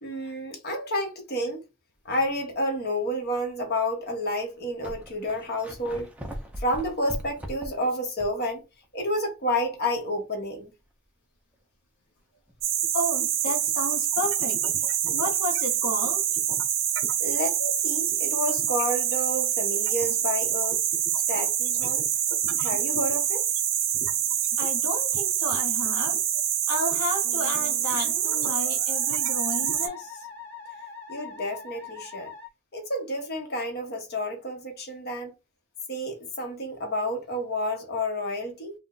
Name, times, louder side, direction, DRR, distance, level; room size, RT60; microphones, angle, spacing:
voice 1, 0.0-1.6 2.0-6.1 6.6-8.6 8.9-10.7 17.2-20.8 21.3-22.1 22.6-23.4 31.1-32.3 32.7-35.3 35.9-38.7, left 1 dB, 50° left, 0.9 m, -30 dB
sound 1, 2.3-2.5 3.2-3.3 4.2-4.3 4.5-8.5 8.8-8.9 12.5-12.6, equal, 5° right, 0.4 m, -39 dB
sound 2, 12.6-29.9, right 10 dB, 65° right, 0.6 m, -26 dB
voice 2, 12.9-16.3 24.6-26.2 26.7-30.3, left 1 dB, 75° left, 0.6 m, -32 dB
Musical instrument, 27.2-32.5, left 5 dB, 10° left, 0.9 m, -43 dB
2.4 x 2.0 x 3.7 m
head